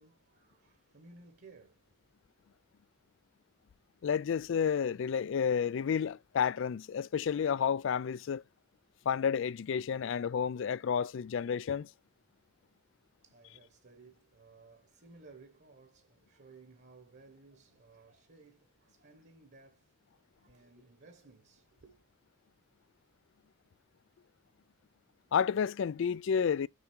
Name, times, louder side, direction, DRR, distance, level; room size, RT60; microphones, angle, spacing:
voice 1, 0.0-2.1 13.2-22.0, right 3 dB, 50° right, 1.2 m, -58 dB
voice 2, 4.0-8.4 9.1-11.9 25.3-26.7, left 7 dB, 55° left, 0.3 m, -31 dB
6.7 x 3.6 x 4.5 m
head